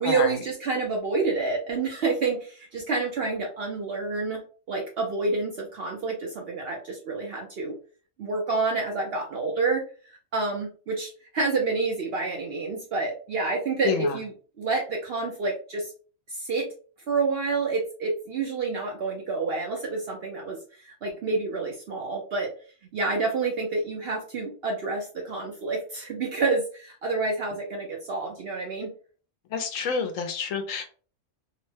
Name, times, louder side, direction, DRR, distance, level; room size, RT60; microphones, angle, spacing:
voice 1, 0.0-4.4 4.7-7.7 8.2-9.8 10.3-15.9 16.3-16.7 17.1-22.5 22.9-28.9, right 3 dB, 60° right, 0 dB, 0.6 m, -28 dB
voice 2, 13.8-14.2 29.5-30.8, left 6 dB, 70° left, 6 dB, 0.9 m, -28 dB
2.8 x 2.1 x 3.2 m, 0.40 s
omnidirectional pair, 1.5 m